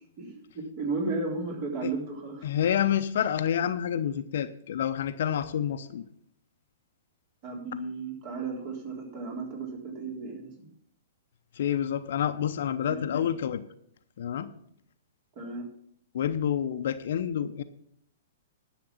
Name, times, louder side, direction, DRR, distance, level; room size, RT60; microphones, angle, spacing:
voice 1, 0.2-2.5 7.4-10.7 12.8-13.2 15.4-15.7, right 3 dB, 40° right, 0 dB, 3.7 m, -34 dB
voice 2, 2.4-6.0 11.6-13.6 14.2-14.5 16.1-17.6, left 9 dB, 60° left, 10 dB, 0.7 m, -28 dB
11.0 x 6.7 x 7.2 m, 0.70 s
figure-of-eight pair, 115°, 0 cm